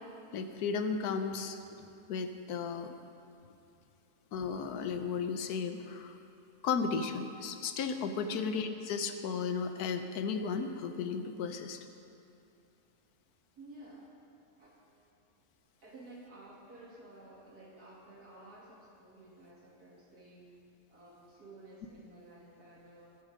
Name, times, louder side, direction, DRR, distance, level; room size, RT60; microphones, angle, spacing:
voice 1, 0.3-1.6 2.1-2.9 4.3-6.2 6.6-11.8, left 5 dB, 80° left, 8 dB, 1.3 m, -34 dB
voice 2, 13.5-14.1 14.6-15.1 15.8-20.5 20.9-23.2, right 2 dB, 85° right, -5 dB, 3.3 m, -53 dB
21.0 x 7.2 x 5.1 m, 2.7 s
omnidirectional pair, 1.6 m